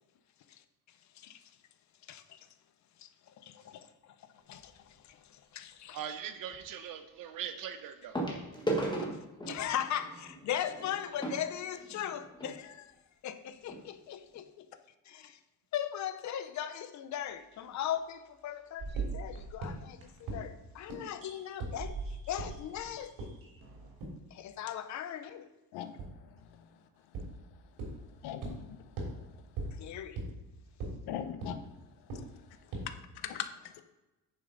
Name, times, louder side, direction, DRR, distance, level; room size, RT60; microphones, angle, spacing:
voice 1, 2.1-2.4 3.0-3.1 3.4-4.1 4.5-4.7 5.1-5.2 5.5-6.0 9.5-12.9 13.2-14.6 15.1-15.4 15.7-21.9 22.3-23.3 24.3-25.5 29.8-30.2, left 10 dB, 50° left, 0.7 m, -38 dB
sound 1, 4.6-4.9 6.5-6.6 8.1-12.5 13.3-13.4 13.6-13.8 14.3-14.4, right 1 dB, 10° left, 1.4 m, -37 dB
voice 2, 5.9-8.2, right 9 dB, 60° right, 1.0 m, -41 dB
sound 2, 17.6-17.8 18.8-20.4 21.2-21.5 21.8-24.0, right 3 dB, 35° right, 1.5 m, -43 dB
sound 3, 19.0-19.1 19.6-19.7 20.3-20.4 20.9-21.0 21.6-21.7 22.4-22.5 23.2-23.3 24.0-24.1 26.0-26.1 27.1-27.2 27.8-27.9 28.4-28.5 29.0-29.1 29.6-29.7 30.2-30.3 30.8-30.9 31.4-31.5 32.1-32.2 32.7-32.8, right 4 dB, 85° right, 3.4 m, -36 dB
voice 3, 28.2-28.9 31.1-31.7 33.2-33.5, left 10 dB, 90° left, 0.9 m, -39 dB
9.6 x 7.0 x 4.0 m
cardioid pair, 170°, 37 cm